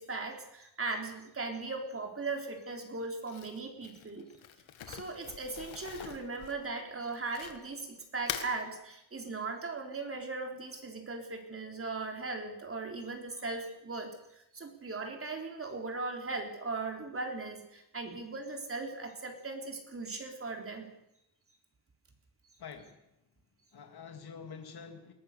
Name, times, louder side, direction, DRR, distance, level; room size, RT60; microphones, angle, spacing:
voice 1, 0.0-4.3 4.9-20.9, right 3 dB, 30° right, 3 dB, 3.7 m, -38 dB
Crumpling crinkling, 3.2-7.8 8.1-8.5, left 9 dB, 90° left, 2.0 m, -43 dB
voice 2, 22.6-23.0 23.7-25.1, left 6 dB, 55° left, 5 dB, 2.6 m, -47 dB
21.5 x 18.5 x 6.9 m, 0.85 s
wide cardioid pair, 150°, 46 cm